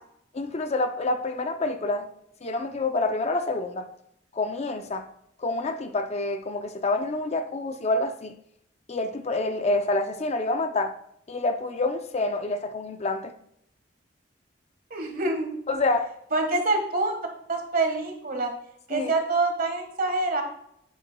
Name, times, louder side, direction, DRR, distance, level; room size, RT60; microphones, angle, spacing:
voice 1, 0.3-2.1 2.4-3.9 4.3-5.1 5.4-8.4 8.9-10.9 11.3-13.3 15.7-16.1 18.9-19.1, left 2 dB, 35° left, 0.5 m, -27 dB
voice 2, 14.9-15.5 16.3-17.1 17.5-18.5 18.9-20.4, right 2 dB, 50° right, 1.4 m, -26 dB
8.9 x 8.0 x 2.2 m
head